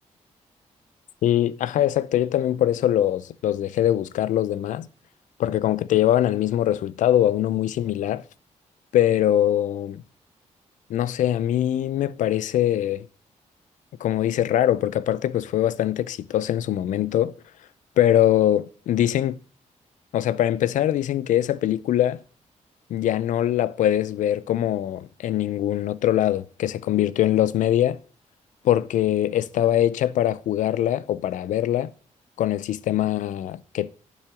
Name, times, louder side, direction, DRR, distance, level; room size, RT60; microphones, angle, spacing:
voice 1, 1.2-4.9 5.4-8.2 8.9-10.0 10.9-13.1 14.0-17.3 18.0-19.4 20.1-22.2 22.9-28.0 28.6-31.9 32.4-33.9, left 12 dB, 90° left, 0.5 m, -22 dB
10.5 x 3.8 x 7.1 m
cardioid pair, 115°, 13 cm